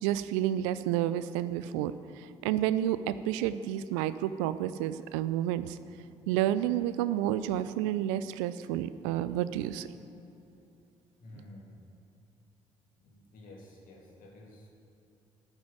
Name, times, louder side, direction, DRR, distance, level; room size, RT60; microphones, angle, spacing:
voice 1, 0.0-5.8 6.3-9.9, right 12 dB, 70° right, 14 dB, 0.5 m, -30 dB
voice 2, 11.2-11.8 13.0-14.7, left 1 dB, 60° left, -1 dB, 2.8 m, -51 dB
10.5 x 9.0 x 7.4 m, 2.9 s
figure-of-eight pair, 45°, 16 cm